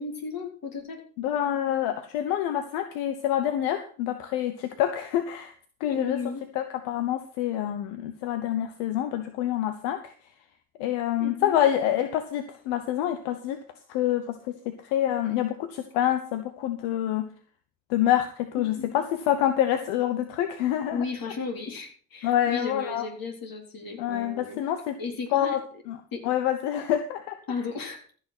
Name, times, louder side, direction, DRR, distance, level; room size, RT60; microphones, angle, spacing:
voice 1, 0.0-1.0 5.9-6.4 11.2-11.5 18.8-19.0 20.9-24.6 25.0-25.6 26.1-26.3 27.5-28.1, left 4 dB, 55° left, 2 dB, 4.1 m, -34 dB
voice 2, 1.2-5.5 5.8-6.2 6.5-10.0 10.8-13.6 13.9-17.3 17.9-21.0 22.2-23.1 24.0-25.0 25.3-25.6 25.9-26.0 26.2-27.4, left 11 dB, 80° left, 9 dB, 1.0 m, -27 dB
14.0 x 6.6 x 6.1 m, 0.42 s
hypercardioid pair, 50°, 41 cm